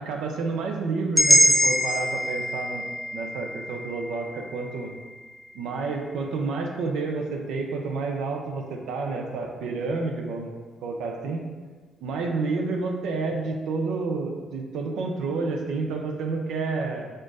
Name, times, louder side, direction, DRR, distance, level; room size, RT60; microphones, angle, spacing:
voice 1, 0.0-2.8 3.1-4.9 5.6-10.5 10.8-11.4 12.0-17.1, right 3 dB, 85° right, 2 dB, 0.5 m, -29 dB
sound 1, 1.2-5.2, equal, 5° left, 0.4 m, -23 dB
4.3 x 2.5 x 4.6 m, 1.4 s
cardioid pair, 90°, 0 cm